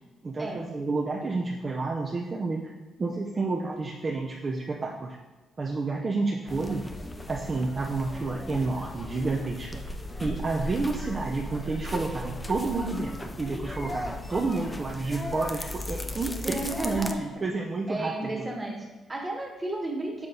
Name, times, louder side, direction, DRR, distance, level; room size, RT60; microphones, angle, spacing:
voice 1, 0.2-2.6 3.0-5.2 5.6-6.8 7.3-9.8 10.2-18.4, right 3 dB, 35° right, -2 dB, 0.6 m, -30 dB
sound 1, 6.5-17.1, left 1 dB, 20° left, 0.5 m, -37 dB
voice 2, 16.4-17.4 17.9-20.3, right 1 dB, 15° right, 0 dB, 1.3 m, -33 dB
7.2 x 3.8 x 3.8 m, 1.2 s
cardioid pair, 90°, 0 cm